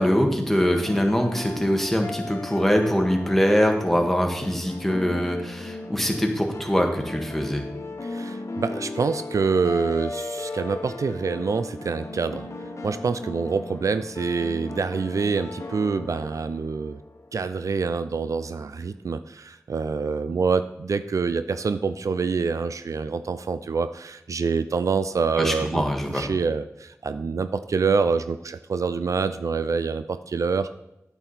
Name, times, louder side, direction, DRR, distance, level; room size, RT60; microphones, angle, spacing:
voice 1, 0.0-7.6 25.4-26.3, equal, 5° left, 2 dB, 1.8 m, -23 dB
sound 1, 0.6-17.5, left 2 dB, 65° left, 1.1 m, -37 dB
voice 2, 8.0-12.5 12.8-17.0 17.3-25.8 26.1-30.7, right 5 dB, 75° right, 12 dB, 0.4 m, -26 dB
8.8 x 7.9 x 4.2 m, 0.88 s
cardioid pair, 45°, 6 cm